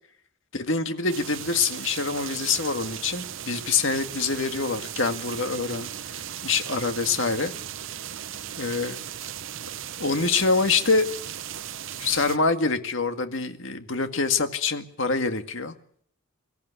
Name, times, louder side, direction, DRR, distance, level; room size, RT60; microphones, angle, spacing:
voice 1, 0.5-5.9 6.4-7.5 8.6-9.0 10.0-11.1 12.0-15.7, left 4 dB, 60° left, 8 dB, 1.9 m, -25 dB
sound 1, 1.1-12.4, right 10 dB, 65° right, 0.8 m, -37 dB
24.5 x 14.5 x 8.3 m, 0.64 s
head